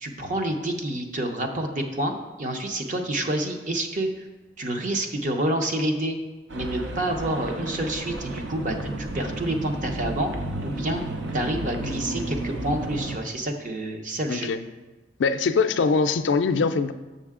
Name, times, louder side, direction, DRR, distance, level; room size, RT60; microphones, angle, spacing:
voice 1, 0.0-4.2 4.6-6.2 6.5-10.3 10.6-11.0 11.3-14.5, right 1 dB, 45° right, 4 dB, 0.7 m, -28 dB
sound 1, 6.5-13.2, right 1 dB, 80° right, 0.7 m, -32 dB
voice 2, 15.2-16.9, left 4 dB, 75° left, 10 dB, 0.4 m, -22 dB
6.8 x 6.5 x 3.6 m, 1.2 s
head